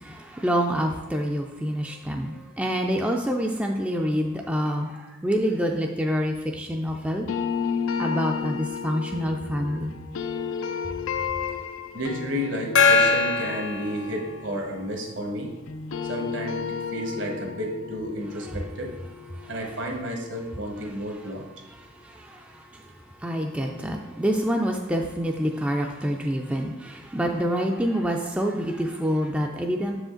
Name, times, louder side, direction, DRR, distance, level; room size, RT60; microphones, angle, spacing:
voice 1, 0.0-4.9 5.2-7.3 8.0-9.9 22.3-22.4 23.2-30.0, equal, 5° right, 1 dB, 0.3 m, -26 dB
sound 1, 7.3-15.4 15.7-20.6, left 6 dB, 90° left, 0.4 m, -33 dB
voice 2, 11.9-15.5 16.0-18.9 19.5-21.4, equal, 70° right, 2 dB, 1.2 m, -32 dB
Gong, 12.7-14.8, left 4 dB, 65° left, 0.8 m, -22 dB
6.6 x 4.9 x 3.8 m, 1.1 s
head